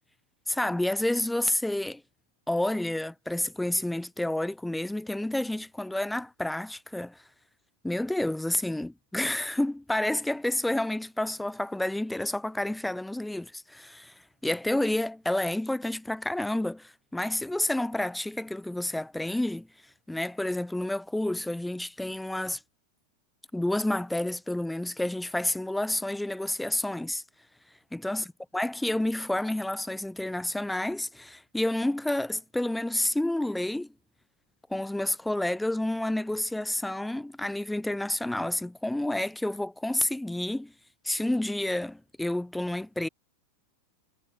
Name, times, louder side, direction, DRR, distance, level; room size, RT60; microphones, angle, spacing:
voice 1, 0.5-2.0 2.5-7.2 7.8-14.1 14.4-19.7 20.1-22.6 23.5-27.2 27.9-28.3 28.5-33.9 34.7-40.7 41.0-43.1, left 1 dB, 5° left, 7.8 m, -29 dB
figure-of-eight pair, 90°, 0 cm